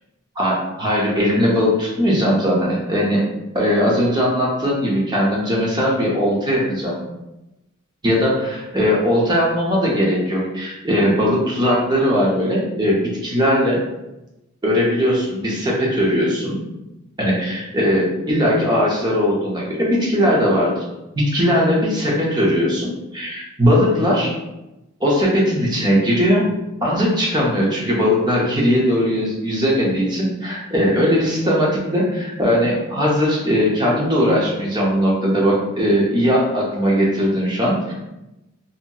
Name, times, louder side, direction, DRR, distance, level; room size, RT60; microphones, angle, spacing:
voice 1, 0.4-3.3 3.5-7.0 8.0-13.8 14.6-16.6 17.2-20.7 21.2-24.3 25.0-26.4 26.8-37.9, equal, 20° right, -4 dB, 0.6 m, -19 dB
2.8 x 2.7 x 2.2 m, 0.95 s
head